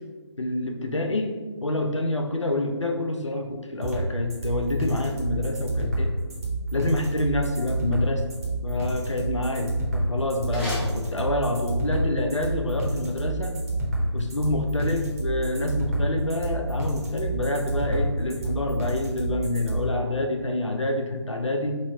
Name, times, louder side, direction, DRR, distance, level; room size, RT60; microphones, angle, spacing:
voice 1, 0.4-6.1 6.7-8.3 8.6-13.6 14.1-21.8, left 2 dB, 90° left, 4 dB, 0.5 m, -27 dB
sound 1, 3.8-19.8, right 2 dB, 30° right, 0.7 m, -28 dB
sound 2, 10.3-11.7, right 1 dB, 5° left, 0.7 m, -38 dB
3.1 x 2.0 x 3.9 m, 1.4 s
figure-of-eight pair, 150°, 15 cm